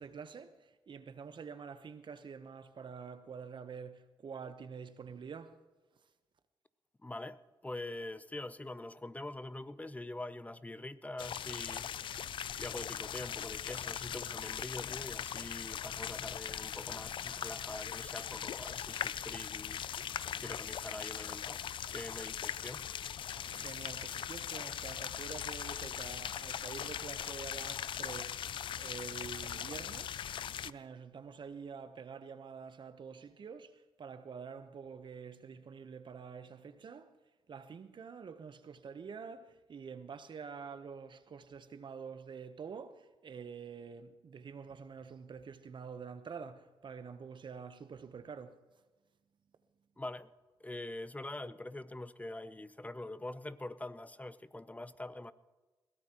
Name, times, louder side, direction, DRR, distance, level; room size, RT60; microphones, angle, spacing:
voice 1, 0.0-5.6 23.5-28.5 28.8-30.3 30.6-37.2 37.5-48.6, right 6 dB, 55° right, 1.0 m, -47 dB
voice 2, 7.0-11.9 12.2-20.1 20.4-21.7 21.9-22.9 50.0-50.3 50.6-55.3, left 2 dB, 15° left, 0.7 m, -44 dB
sound 1, 11.2-30.7, left 9 dB, 60° left, 0.4 m, -40 dB
21.5 x 16.5 x 3.0 m
supercardioid pair, 55°, 9 cm